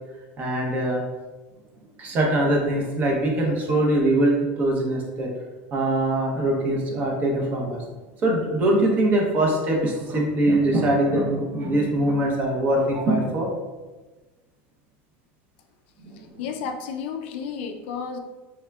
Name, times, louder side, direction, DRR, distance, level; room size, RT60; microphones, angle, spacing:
voice 1, 0.4-1.0 1.8-5.3 5.7-13.5 16.0-16.4, right 1 dB, 25° right, 0 dB, 0.7 m, -23 dB
voice 2, 16.0-18.2, left 6 dB, 65° left, 5 dB, 0.4 m, -32 dB
4.3 x 3.5 x 2.3 m, 1.2 s
supercardioid pair, 175°, 6 cm